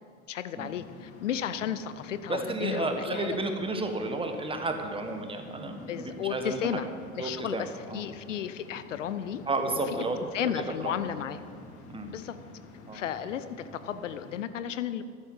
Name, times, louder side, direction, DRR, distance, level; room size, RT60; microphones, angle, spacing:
voice 1, 0.3-3.4 5.7-6.9 7.2-9.4 10.3-11.4 12.1-12.4 12.9-15.0, left 9 dB, 65° left, 13 dB, 0.7 m, -33 dB
sound 1, 0.6-14.4, left 3 dB, 35° left, 1.9 m, -49 dB
voice 2, 2.3-6.8 7.2-8.0 9.5-10.9 11.9-12.1 12.9-13.0, right 2 dB, 15° right, 5 dB, 1.5 m, -32 dB
14.5 x 12.0 x 5.7 m, 2.1 s
figure-of-eight pair, 80°, 41 cm